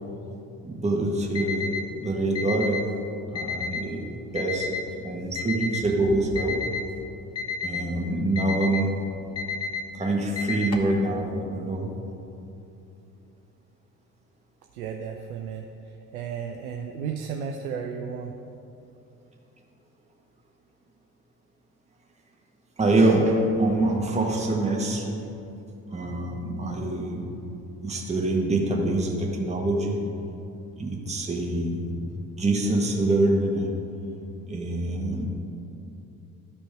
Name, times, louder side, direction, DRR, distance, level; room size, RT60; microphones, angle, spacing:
voice 1, 0.6-2.8 3.3-4.1 4.3-6.6 7.6-8.9 9.9-11.9 22.8-25.2 25.9-27.3 27.8-30.0 30.8-32.1 32.4-33.7 34.5-35.2, right 2 dB, 15° right, -1 dB, 1.5 m, -25 dB
Alarm, 1.3-1.8 2.3-2.8 3.3-3.8 4.4-4.8 5.4-5.8 6.4-6.8 7.4-7.8 8.4-8.8 9.4-9.8 10.4-10.9, left 5 dB, 35° left, 1.1 m, -31 dB
voice 2, 14.7-18.3, right 6 dB, 75° right, 3 dB, 0.6 m, -34 dB
12.5 x 5.1 x 4.9 m, 2.7 s
hypercardioid pair, 60°, 43 cm